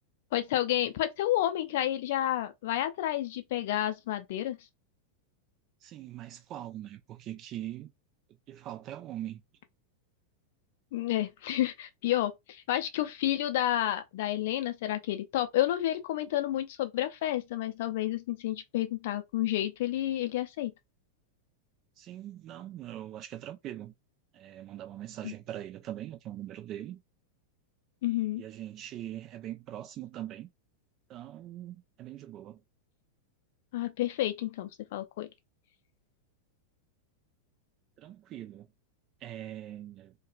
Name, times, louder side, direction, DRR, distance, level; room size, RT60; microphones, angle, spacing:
voice 1, 0.3-4.6 10.9-20.7 25.2-25.3 28.0-28.4 33.7-35.3, left 13 dB, 50° left, 0.5 m, -30 dB
voice 2, 5.8-7.9 8.5-9.4 22.0-23.9 24.3-27.0 28.4-30.5 31.1-32.6 38.0-38.7 39.2-40.1, right 12 dB, 35° right, 0.5 m, -42 dB
2.8 x 2.3 x 2.4 m
figure-of-eight pair, 90°, 0 cm